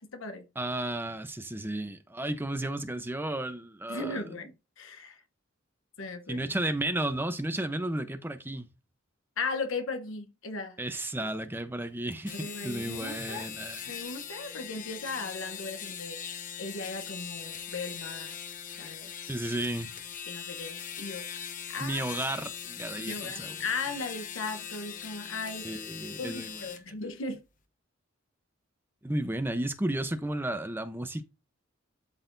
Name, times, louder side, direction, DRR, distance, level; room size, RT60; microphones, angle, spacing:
voice 1, 0.0-0.5 3.9-5.2 6.0-6.5 9.4-10.8 12.3-13.5 13.9-18.4 18.8-19.3 20.3-21.3 21.7-22.0 23.0-25.7 26.2-27.4, left 3 dB, 75° left, 1.0 m, -37 dB
voice 2, 0.6-4.3 6.3-8.7 10.8-13.8 19.3-19.9 21.8-23.5 25.6-26.6 29.0-31.2, right 1 dB, 10° right, 0.8 m, -33 dB
sound 1, 12.1-26.8, left 8 dB, 40° left, 0.8 m, -41 dB
12.0 x 4.0 x 2.6 m
head